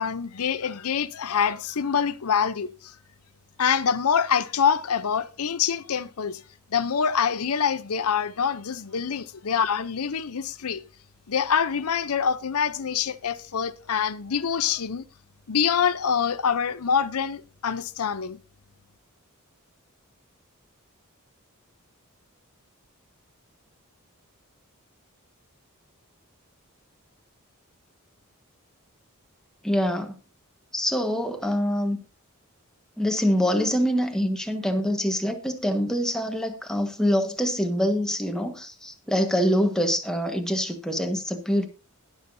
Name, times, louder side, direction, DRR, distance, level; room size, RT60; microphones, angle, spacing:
voice 1, 0.0-2.9 3.6-6.4 6.7-10.8 11.3-15.0 15.5-18.4, left 7 dB, 85° left, 0.7 m, -25 dB
voice 2, 29.6-30.1 30.7-32.0 33.0-41.7, equal, 5° left, 1.4 m, -25 dB
21.0 x 7.2 x 2.7 m
head